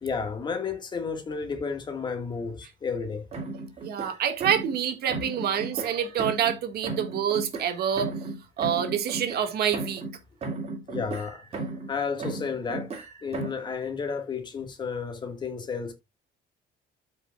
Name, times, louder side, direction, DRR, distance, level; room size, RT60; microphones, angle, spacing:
voice 1, 0.0-3.3 10.9-11.5 11.9-15.9, left 5 dB, 25° left, 1.7 m, -32 dB
sound 1, 3.3-4.8 5.1-6.6 6.8-10.2 10.4-11.9 12.2-13.7, right 3 dB, 35° right, 2.2 m, -35 dB
voice 2, 3.8-8.1 8.6-10.0, right 9 dB, 55° right, 1.7 m, -27 dB
13.0 x 5.3 x 2.3 m
cardioid pair, 180°, 19 cm